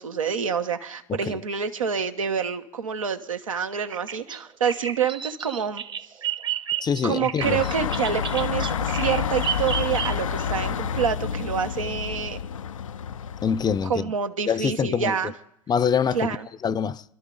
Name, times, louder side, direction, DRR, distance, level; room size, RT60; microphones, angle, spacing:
voice 1, 0.0-6.2 7.0-12.4 13.8-15.3 16.1-16.4, right 7 dB, 90° right, 1.1 m, -27 dB
Bird vocalization bird call bird song, 3.9-10.5, right 9 dB, 25° right, 0.9 m, -32 dB
voice 2, 6.8-7.6 13.4-14.1 14.5-15.1 15.7-16.4 16.6-17.0, left 7 dB, 25° left, 0.5 m, -24 dB
sound 1, 7.4-13.9, left 7 dB, 90° left, 0.5 m, -29 dB
25.5 x 12.0 x 3.9 m
hypercardioid pair, 85°, 17 cm